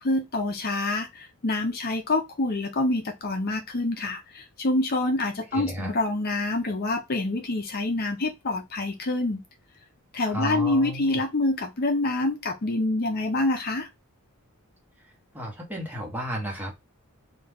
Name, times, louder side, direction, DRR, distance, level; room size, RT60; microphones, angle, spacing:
voice 1, 0.0-9.4 10.1-13.9, left 2 dB, 45° left, 0.6 m, -26 dB
voice 2, 5.5-5.9 10.2-11.2 15.3-16.8, equal, 10° right, 1.0 m, -33 dB
2.9 x 2.3 x 3.4 m
head